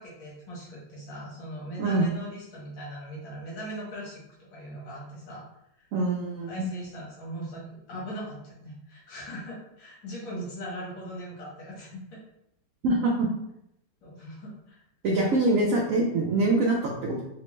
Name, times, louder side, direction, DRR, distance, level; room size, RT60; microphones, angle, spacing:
voice 1, 0.0-4.2 4.5-5.5 6.5-12.2 14.0-14.8 15.2-15.4, equal, 80° left, -5 dB, 2.0 m, -40 dB
voice 2, 5.9-6.7 12.8-13.3 15.0-17.2, right 2 dB, 80° right, -2 dB, 0.7 m, -24 dB
4.1 x 2.1 x 3.0 m, 0.80 s
omnidirectional pair, 2.0 m